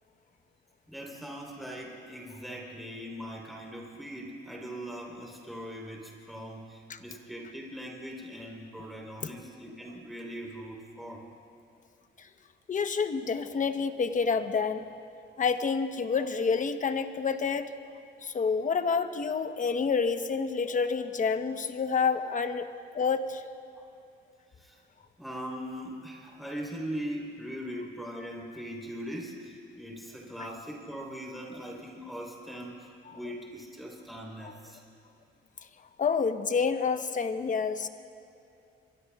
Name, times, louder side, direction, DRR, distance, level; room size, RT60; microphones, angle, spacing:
voice 1, 0.9-11.2 23.4-23.9 24.6-24.8 25.2-34.8, equal, ahead, -2 dB, 3.8 m, -40 dB
voice 2, 12.7-14.8 15.4-17.7 18.2-22.6 23.0-23.4 36.0-37.9, left 5 dB, 40° left, 8 dB, 1.0 m, -28 dB
25.0 x 24.0 x 2.4 m, 2.6 s
cardioid pair, 90°, 20 cm